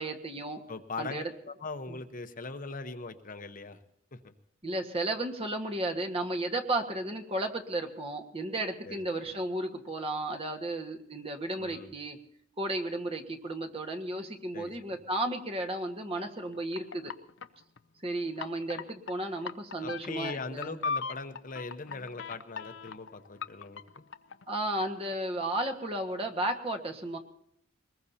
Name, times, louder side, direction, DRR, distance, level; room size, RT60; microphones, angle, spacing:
voice 1, 0.0-0.6 1.0-1.3 4.6-12.2 12.6-17.1 18.0-20.8 24.5-27.2, right 1 dB, 30° right, 5 dB, 1.5 m, -33 dB
voice 2, 0.7-3.8 4.1-4.3 8.8-9.0 11.6-11.9 14.5-15.0 19.8-24.0, left 3 dB, 45° left, 8 dB, 0.9 m, -40 dB
sound 1, 16.4-17.8 18.4-19.1 19.4-25.1, left 5 dB, 70° left, 0.6 m, -38 dB
22.5 x 20.0 x 2.8 m, 0.70 s
head